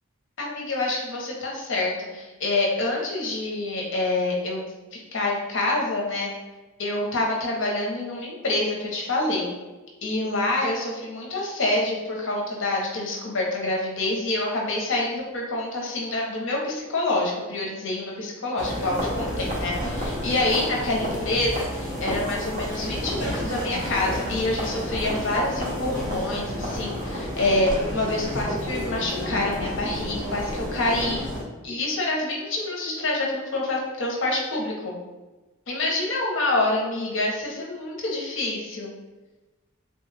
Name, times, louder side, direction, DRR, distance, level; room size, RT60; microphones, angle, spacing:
voice 1, 0.4-4.7 4.9-6.3 6.8-9.5 10.0-31.2 31.6-35.0 35.7-38.9, left 2 dB, 60° left, -1 dB, 0.7 m, -27 dB
sound 1, 18.6-31.4, equal, 35° right, 0.7 m, -30 dB
3.1 x 2.2 x 3.2 m, 1.2 s
head